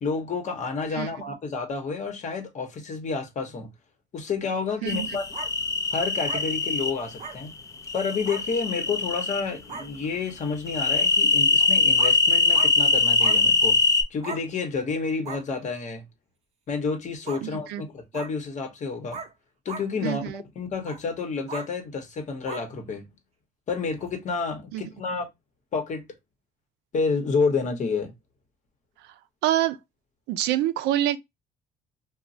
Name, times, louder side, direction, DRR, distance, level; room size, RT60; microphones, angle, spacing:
voice 1, 0.0-3.7 4.1-5.3 5.9-7.5 7.9-13.8 14.1-16.0 16.7-19.2 19.6-23.1 23.7-25.3 25.7-26.0 26.9-28.1, left 4 dB, 45° left, 1.0 m, -29 dB
sound 1, 4.9-6.9 7.9-9.4 10.7-14.0, left 3 dB, 20° left, 0.5 m, -22 dB
sound 2, 5.3-5.5 6.3-6.4 7.2-7.4 8.3-8.4 9.3-9.4 9.7-9.9 11.6-11.7 12.0-12.2 12.5-12.7 13.2-13.4 14.2-14.4 15.2-15.4 17.3-17.4 18.1-18.3 19.1-19.3 19.7-19.9 20.8-21.0 21.5-21.7 22.5-22.7 24.0-24.1, right 4 dB, 40° right, 0.7 m, -36 dB
voice 2, 17.4-17.8 20.0-20.4 24.7-24.8 29.4-29.8 30.3-31.2, right 13 dB, 85° right, 0.4 m, -26 dB
3.0 x 2.2 x 2.7 m
cardioid pair, 110°, 17 cm